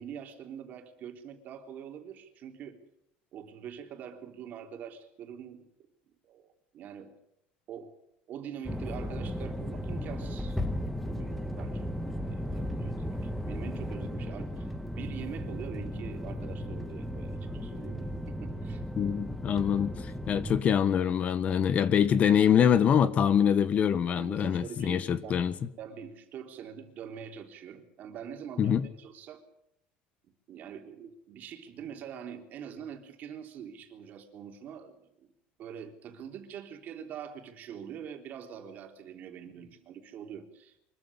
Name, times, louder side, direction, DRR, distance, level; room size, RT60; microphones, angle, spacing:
voice 1, 0.0-2.8 3.3-5.7 6.2-6.5 6.7-7.2 7.7-7.9 8.3-10.6 11.0-11.9 12.2-14.7 14.9-18.8 24.1-25.5 25.8-29.4 30.5-35.3 35.6-40.8, right 8 dB, 45° right, 5 dB, 3.4 m, -44 dB
sound 1, 8.6-20.6, equal, 5° left, 1.8 m, -35 dB
voice 2, 18.9-25.5 28.6-28.8, left 8 dB, 35° left, 14 dB, 1.3 m, -25 dB
24.0 x 14.0 x 10.0 m, 0.78 s
cardioid pair, 140°, 4 cm